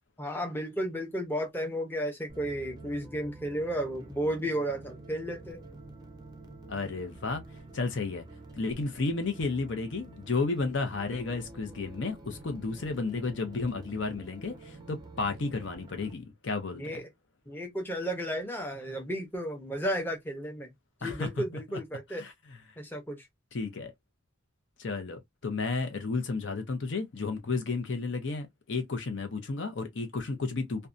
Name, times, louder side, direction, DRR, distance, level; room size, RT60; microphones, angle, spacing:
voice 1, 0.2-5.6 16.7-17.0 17.5-20.7 21.0-22.2 22.8-23.3, equal, 10° left, 0.7 m, -33 dB
sound 1, 2.3-16.1, right 2 dB, 20° right, 0.5 m, -49 dB
voice 2, 6.7-7.4 7.7-8.2 8.5-17.0 21.0-21.3 22.2-22.3 23.5-23.9 24.8-30.9, left 3 dB, 65° left, 0.6 m, -32 dB
2.6 x 2.2 x 2.4 m
head